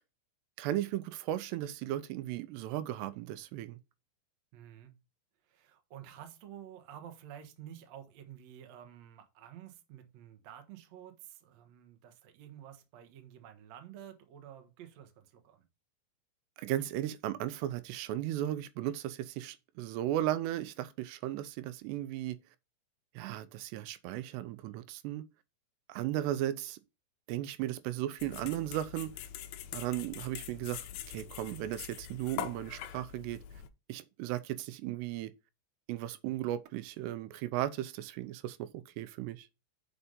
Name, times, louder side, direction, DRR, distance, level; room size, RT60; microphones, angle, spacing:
voice 1, 0.6-3.8 16.6-22.4 23.2-25.2 25.9-26.8 27.3-29.1 29.7-33.4 33.9-35.3 35.9-39.5, right 13 dB, 90° right, 2.8 m, -36 dB
voice 2, 4.5-4.9 5.5-15.6, right 10 dB, 65° right, 1.8 m, -51 dB
sound 1, 28.2-33.7, left 10 dB, 80° left, 2.3 m, -44 dB
6.8 x 5.5 x 5.3 m
omnidirectional pair, 4.8 m